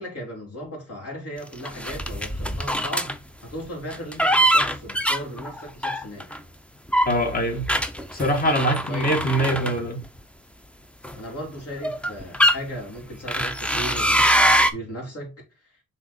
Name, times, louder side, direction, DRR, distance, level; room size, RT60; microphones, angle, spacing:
voice 1, 0.0-3.1 3.4-6.4 8.9-9.8 11.1-15.3, equal, 50° left, 3.4 m, -36 dB
sound 1, 1.6-3.2 3.9-6.4 6.9-10.2 11.0-11.2 11.8-12.6 13.3-14.7, equal, 5° left, 0.6 m, -23 dB
voice 2, 7.1-7.7 8.1-10.0, equal, 30° left, 1.9 m, -23 dB
6.0 x 3.7 x 4.3 m
cardioid pair, 90°, 30 cm